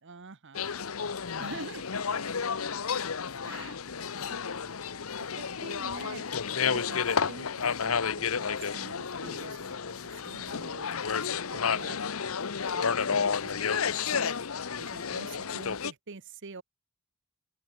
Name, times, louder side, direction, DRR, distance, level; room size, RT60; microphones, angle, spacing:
voice 1, 0.0-2.0 3.4-3.8 5.3-6.3 6.7-12.0 12.7-14.3 14.8-16.6, right 3 dB, 60° right, 1.1 m, -46 dB
sound 1, 0.5-15.9, left 6 dB, 70° left, 0.9 m, -31 dB
voice 2, 1.0-1.3 1.9-5.8, left 4 dB, 90° left, 6.5 m, -49 dB
head